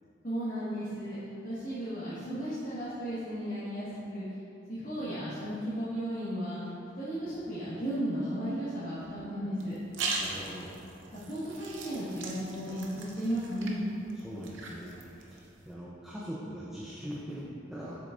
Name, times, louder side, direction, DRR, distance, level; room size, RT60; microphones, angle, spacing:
voice 1, 0.2-1.2 1.4-4.2 4.7-6.6 7.0-9.7 11.3-13.8, equal, 45° left, -12 dB, 1.5 m, -34 dB
sound 1, 9.6-15.7, right 3 dB, 70° right, 0.7 m, -40 dB
voice 2, 10.2-10.7 14.1-15.4 15.7-18.1, equal, 5° right, -7 dB, 0.6 m, -41 dB
8.0 x 6.5 x 2.6 m, 2.9 s
head